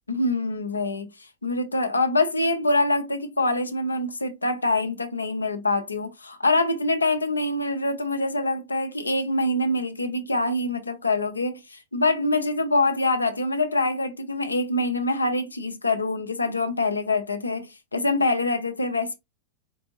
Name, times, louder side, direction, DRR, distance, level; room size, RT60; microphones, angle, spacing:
voice 1, 0.1-1.1 1.4-19.1, left 2 dB, 80° left, 0.6 m, -25 dB
4.5 x 2.5 x 2.9 m
figure-of-eight pair, 90°, 0 cm